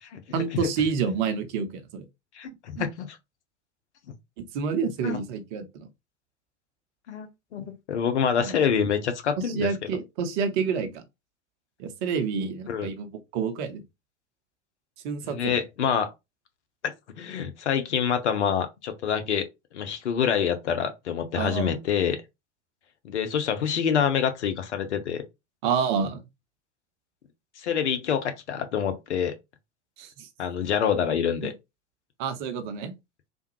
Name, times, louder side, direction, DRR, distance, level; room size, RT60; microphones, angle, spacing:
voice 1, 0.3-2.0 2.8-2.9 4.4-5.9 8.4-8.5 9.4-11.0 11.8-13.8 15.0-15.6 21.4-21.8 25.6-26.2 30.0-30.3 31.4-31.5 32.2-32.9, right 6 dB, 40° right, 0.7 m, -28 dB
voice 2, 2.4-3.1 5.0-5.2 7.1-9.7 12.3-12.9 15.2-16.1 16.8-19.4 19.7-22.2 23.0-25.2 27.6-29.3 30.4-31.5, left 7 dB, 65° left, 0.7 m, -26 dB
3.4 x 2.2 x 3.0 m
figure-of-eight pair, 90°, 37 cm